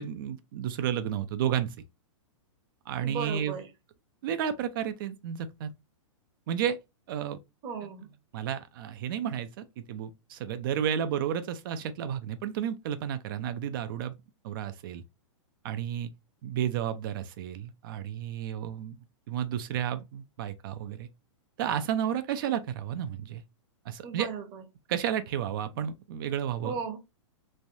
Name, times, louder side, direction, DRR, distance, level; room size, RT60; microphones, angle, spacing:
voice 1, 0.0-1.7 2.9-3.6 4.2-5.7 6.5-6.8 7.1-7.4 7.8-7.9 8.3-14.1 14.4-15.0 15.6-16.1 16.4-19.0 19.3-21.1 21.6-23.4 23.9-24.3 24.9-26.7, right 9 dB, 45° right, 0.4 m, -32 dB
voice 2, 3.0-3.7 7.6-8.1 24.0-24.6 26.6-27.0, right 6 dB, 25° right, 0.8 m, -35 dB
3.2 x 2.2 x 2.6 m
hypercardioid pair, 150°, 16 cm